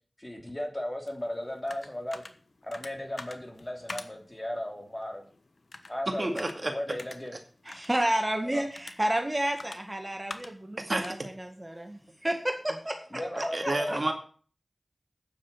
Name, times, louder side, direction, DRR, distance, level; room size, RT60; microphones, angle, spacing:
voice 1, 0.2-2.2 2.6-5.2 5.9-7.3 8.4-8.6 13.1-14.0, left 1 dB, 25° left, 2 dB, 3.0 m, -36 dB
sound 1, 1.1-12.7, left 3 dB, 70° left, 1.1 m, -48 dB
voice 2, 6.1-6.7 10.8-11.1 13.3-14.1, right 2 dB, 50° right, 4 dB, 2.2 m, -30 dB
voice 3, 7.7-13.0 13.4-14.0, right 1 dB, 25° right, 4 dB, 1.8 m, -31 dB
9.3 x 7.3 x 7.3 m, 0.42 s
wide cardioid pair, 45°, 0 cm